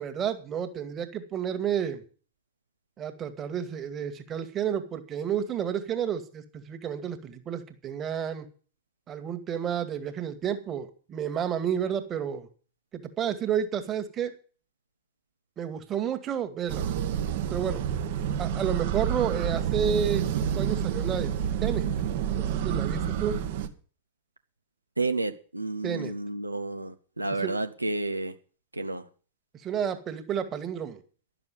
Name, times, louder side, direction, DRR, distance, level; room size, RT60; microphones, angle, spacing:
voice 1, 0.0-2.0 3.0-8.5 9.1-12.5 12.9-14.3 15.6-16.9 17.5-17.8 18.4-21.3 21.6-21.9 22.3-23.4 25.8-26.1 27.4-27.5 29.6-31.0, right 8 dB, 25° right, 1.9 m, -31 dB
sound 1, 16.7-23.7, right 9 dB, 50° right, 1.4 m, -28 dB
voice 2, 25.0-28.4 28.7-29.1, right 2 dB, 85° right, 0.9 m, -31 dB
12.0 x 7.0 x 9.3 m
figure-of-eight pair, 90°, 0 cm